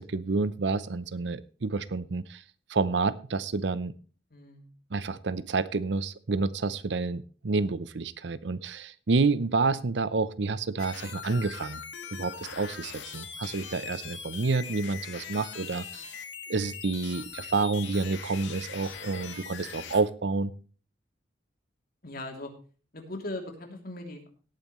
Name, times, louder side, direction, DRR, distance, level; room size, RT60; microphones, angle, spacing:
voice 1, 0.0-2.4 2.7-3.9 4.9-11.8 12.1-15.8 16.5-20.5, right 3 dB, 65° right, 16 dB, 0.7 m, -29 dB
voice 2, 4.3-4.7 22.0-22.5 22.9-24.3, left 1 dB, 50° left, 3 dB, 3.0 m, -39 dB
sound 1, 10.8-20.0, left 7 dB, 80° left, 1.8 m, -41 dB
17.5 x 9.0 x 3.1 m, 0.37 s
head